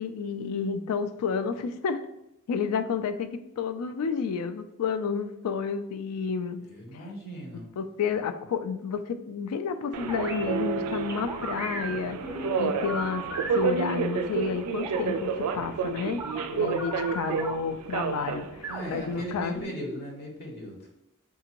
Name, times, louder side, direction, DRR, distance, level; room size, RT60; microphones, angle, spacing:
voice 1, 0.0-2.0 2.5-6.6 7.5-13.2 13.5-16.2 16.5-19.6, left 6 dB, 80° left, 10 dB, 0.3 m, -31 dB
voice 2, 6.6-7.7 18.7-20.9, right 1 dB, 45° left, 0 dB, 0.8 m, -38 dB
Subway metro underground, 9.9-19.6, right 6 dB, 90° right, 0.3 m, -31 dB
sound 1, 10.1-10.4 11.1-14.3 14.8-15.3 16.2-17.5 18.6-20.0, right 1 dB, 10° right, 0.4 m, -37 dB
3.6 x 2.5 x 2.8 m, 0.87 s
head